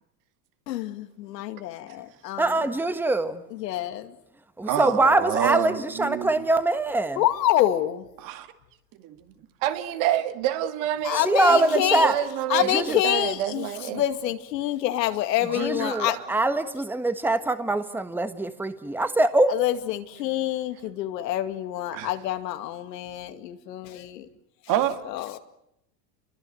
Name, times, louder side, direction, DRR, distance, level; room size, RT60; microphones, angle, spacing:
voice 1, 0.7-2.5 3.6-4.2 7.2-8.0 11.0-12.1 12.5-13.7 13.9-16.2 19.5-24.3 25.1-25.4, left 13 dB, 80° left, 2.4 m, -27 dB
voice 2, 2.4-3.4 4.6-7.2 11.1-12.1 12.7-13.0 15.4-19.5, right 2 dB, 5° right, 1.4 m, -23 dB
voice 3, 4.7-6.4 8.2-8.4 15.5-16.3 21.9-22.1 24.7-25.0, right 11 dB, 40° right, 2.3 m, -28 dB
voice 4, 9.6-14.0, right 12 dB, 55° right, 2.2 m, -28 dB
29.0 x 23.0 x 8.0 m
supercardioid pair, 135°, 49 cm